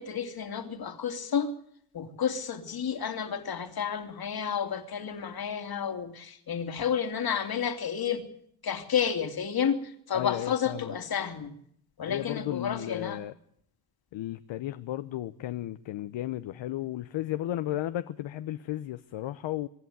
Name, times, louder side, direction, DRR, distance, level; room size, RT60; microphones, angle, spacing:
voice 1, 0.0-1.5 1.9-8.2 8.6-9.8 10.1-11.5 12.0-13.2, left 7 dB, 45° left, 2.7 m, -31 dB
voice 2, 10.1-10.9 12.1-13.3 14.1-19.7, left 14 dB, 65° left, 0.9 m, -34 dB
24.5 x 11.5 x 9.3 m
cardioid pair, 90°, 49 cm